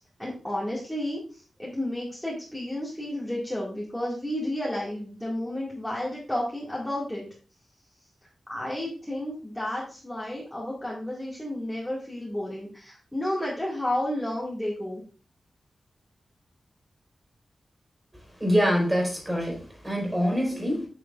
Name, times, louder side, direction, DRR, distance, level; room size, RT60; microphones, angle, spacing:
voice 1, 0.2-7.2 8.5-15.0, left 1 dB, 5° left, -6 dB, 2.0 m, -32 dB
voice 2, 18.4-19.6 19.8-20.9, equal, 15° right, -1 dB, 4.1 m, -24 dB
9.3 x 8.4 x 2.4 m, 0.39 s
wide cardioid pair, 175°, 0 cm